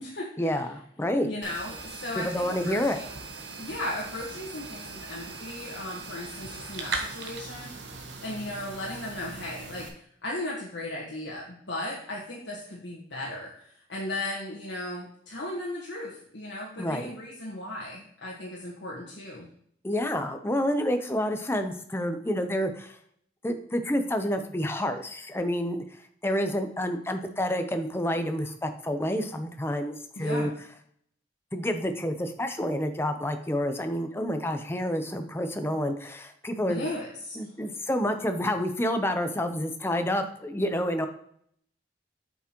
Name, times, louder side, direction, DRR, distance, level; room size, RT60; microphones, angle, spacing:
voice 1, 0.4-1.3 2.2-3.0 16.8-17.1 19.8-23.0 23.4-25.8 26.2-29.9 30.2-30.5 31.5-36.8 37.4-41.1, equal, 15° left, 7 dB, 0.6 m, -28 dB
voice 2, 1.2-3.2 3.6-7.7 8.2-9.9 10.2-19.5 30.2-30.5 36.7-37.5, left 1 dB, 85° left, -4 dB, 1.5 m, -36 dB
sound 1, 1.4-9.9, right 4 dB, 90° right, 1.2 m, -39 dB
7.9 x 6.0 x 3.0 m, 0.67 s
head